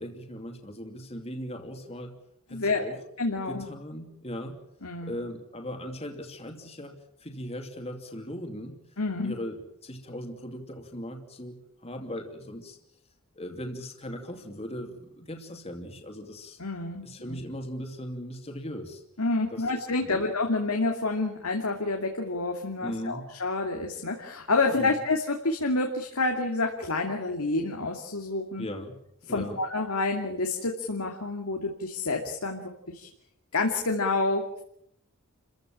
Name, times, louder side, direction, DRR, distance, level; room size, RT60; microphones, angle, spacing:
voice 1, 0.0-2.2 2.5-3.0 3.5-4.6 5.1-6.9 7.2-8.8 9.2-12.8 13.4-16.6 17.0-19.0 19.5-20.3 22.8-23.3 24.7-24.9 28.6-29.0 29.3-29.6, equal, 30° left, 4 dB, 2.7 m, -38 dB
voice 2, 2.5-2.8 3.2-3.7 4.8-5.1 9.0-9.3 16.6-17.4 19.2-28.6 29.3-33.1 33.5-34.6, left 3 dB, 90° left, 2 dB, 2.7 m, -28 dB
29.0 x 15.5 x 8.9 m, 0.76 s
head